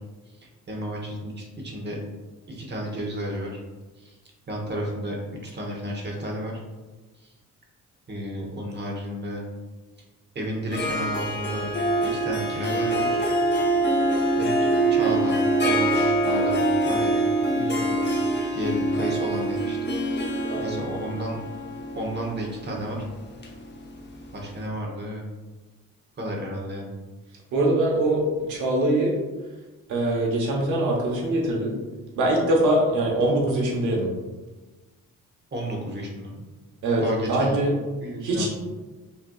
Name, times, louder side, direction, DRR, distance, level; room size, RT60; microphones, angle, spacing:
voice 1, 0.4-2.0 2.5-3.6 4.0-4.2 4.5-5.2 5.4-6.6 7.1-7.3 8.1-9.4 10.3-11.7 12.0-13.2 14.4-15.4 15.6-17.1 18.5-20.3 20.6-21.4 22.0-23.1 24.3-25.2 26.2-26.9 35.5-36.4 37.0-37.6 38.0-38.5, right 1 dB, 35° right, -1 dB, 1.2 m, -32 dB
Harp, 10.7-24.3, right 1 dB, 35° left, 0.8 m, -24 dB
voice 2, 17.5-18.0 20.5-20.8 27.5-28.2 28.5-29.2 29.9-31.7 32.2-34.1 36.8-37.0 37.3-37.7 38.2-38.5, right 1 dB, 80° right, -2 dB, 1.0 m, -23 dB
5.5 x 2.8 x 2.3 m, 1.2 s
cardioid pair, 90°, 30 cm